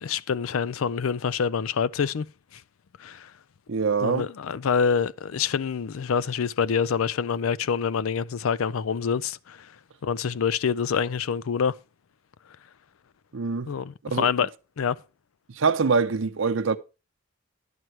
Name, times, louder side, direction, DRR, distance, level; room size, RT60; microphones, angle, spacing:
voice 1, 0.0-2.3 2.5-2.6 3.0-3.3 4.0-9.7 10.0-11.8 13.7-14.5 14.8-15.0, left 6 dB, 85° left, 0.4 m, -26 dB
voice 2, 3.7-4.2 13.3-13.7 14.1-14.3 15.5-16.8, right 5 dB, 65° right, 0.6 m, -24 dB
11.0 x 7.8 x 4.4 m
head